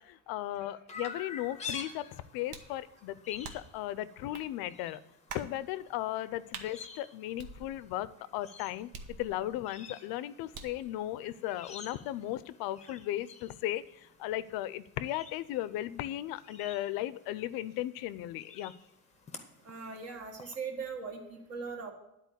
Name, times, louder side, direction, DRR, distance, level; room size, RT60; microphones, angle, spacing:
voice 1, 0.0-5.0 5.3-18.7, left 14 dB, 80° left, 16 dB, 0.6 m, -36 dB
Chirp tweet, 0.9-20.5, left 5 dB, 20° left, 0.8 m, -50 dB
sound 1, 2.5-2.8 3.4-3.8 4.3-4.5 5.3-5.6 6.5-6.7 7.4-8.0 8.9-9.6 10.5-10.9, right 5 dB, 70° right, 1.2 m, -45 dB
voice 2, 19.6-21.9, right 5 dB, 45° right, 3 dB, 1.8 m, -40 dB
10.5 x 4.4 x 8.0 m, 0.83 s
cardioid pair, 170°, 36 cm